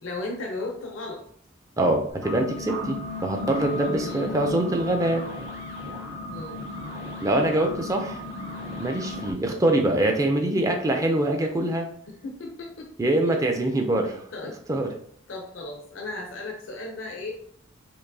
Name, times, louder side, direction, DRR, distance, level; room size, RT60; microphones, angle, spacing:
voice 1, 0.0-1.2 4.0-4.3 6.3-6.6 12.1-12.9 13.2-13.3 13.9-14.0 14.3-14.5 15.3-17.3, left 2 dB, 75° left, 0 dB, 0.6 m, -35 dB
voice 2, 1.8-5.2 7.2-8.2 8.8-11.9 13.0-14.2 14.7-14.9, right 1 dB, 15° right, 3 dB, 0.4 m, -24 dB
sound 1, 2.1-9.3, left 2 dB, 80° right, 0.9 m, -35 dB
4.5 x 2.6 x 2.7 m, 0.63 s
head